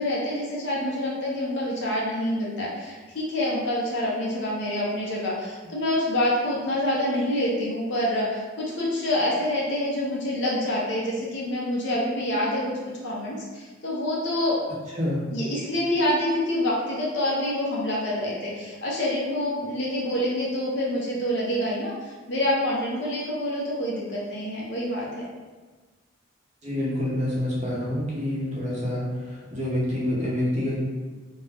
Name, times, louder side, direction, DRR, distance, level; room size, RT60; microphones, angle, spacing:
voice 1, 0.0-12.6 13.0-14.6 15.3-25.1, left 1 dB, 65° left, -5 dB, 0.7 m, -27 dB
voice 2, 26.6-30.8, left 1 dB, 35° right, -6 dB, 0.8 m, -27 dB
2.5 x 2.2 x 3.3 m, 1.3 s
head